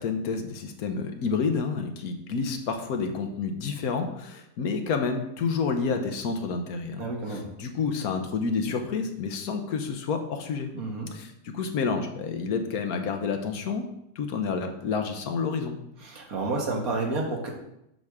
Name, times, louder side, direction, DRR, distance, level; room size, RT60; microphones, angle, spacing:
voice 1, 0.0-10.7 11.1-13.9 14.2-15.8, left 5 dB, 85° left, 6 dB, 1.4 m, -29 dB
voice 2, 7.0-7.5 10.7-11.1 16.0-17.5, right 3 dB, 75° right, 0 dB, 1.8 m, -30 dB
7.8 x 3.6 x 6.3 m, 0.81 s
omnidirectional pair, 1.5 m